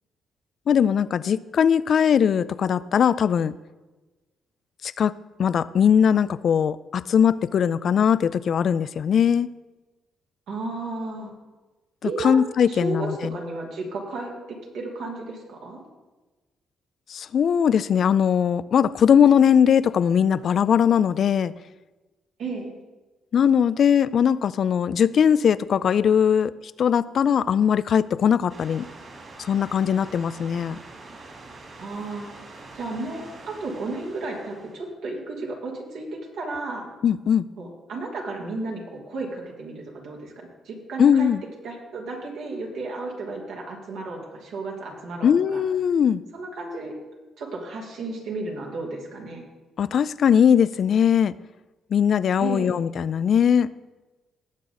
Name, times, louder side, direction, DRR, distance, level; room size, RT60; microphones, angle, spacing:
voice 1, 0.7-3.5 4.8-5.1 5.4-9.5 12.0-13.3 17.1-21.5 23.3-26.5 26.8-28.9 29.4-30.8 37.0-37.5 41.0-41.4 45.2-46.2 49.8-51.3 51.9-53.7, left 8 dB, 60° left, 17 dB, 0.4 m, -20 dB
voice 2, 10.5-11.3 12.0-12.4 12.7-15.8 22.4-22.7 31.8-32.3 32.7-36.9 37.6-41.3 41.6-45.6 46.3-46.9 47.4-49.4 52.4-52.7, right 3 dB, 85° right, -2 dB, 3.1 m, -33 dB
sound 1, 28.5-34.9, right 3 dB, 50° right, 3.2 m, -44 dB
18.5 x 7.3 x 4.0 m, 1.2 s
cardioid pair, 90°, 0 cm